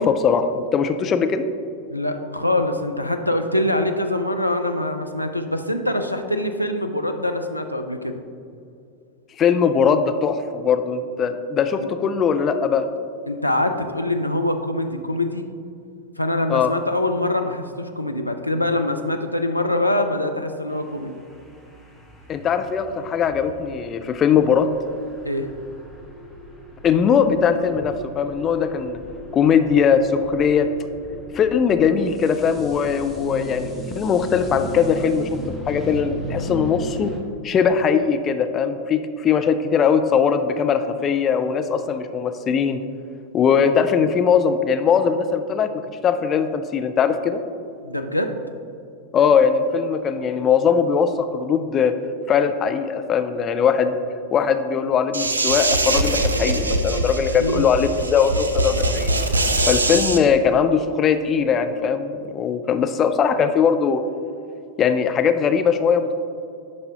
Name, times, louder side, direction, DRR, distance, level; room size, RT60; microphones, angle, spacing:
voice 1, 0.0-1.5 9.4-12.8 16.5-16.7 22.3-24.7 26.8-29.0 29.3-30.7 31.3-35.3 35.7-37.1 37.4-42.8 43.3-47.4 49.1-51.9 52.3-53.9 54.3-59.1 59.7-64.0 64.8-66.1, left 6 dB, 25° left, 8 dB, 0.4 m, -20 dB
voice 2, 1.9-8.2 11.8-11.9 13.3-15.5 16.2-21.2 25.2-25.5 47.8-48.3 57.4-57.6, left 1 dB, 90° left, 5 dB, 0.4 m, -24 dB
sound 1, 20.7-37.2, equal, ahead, 1.1 m, -37 dB
sound 2, 55.1-60.2, right 2 dB, 75° right, 0.5 m, -22 dB
9.5 x 5.4 x 2.8 m, 2.5 s
figure-of-eight pair, 90°, 0 cm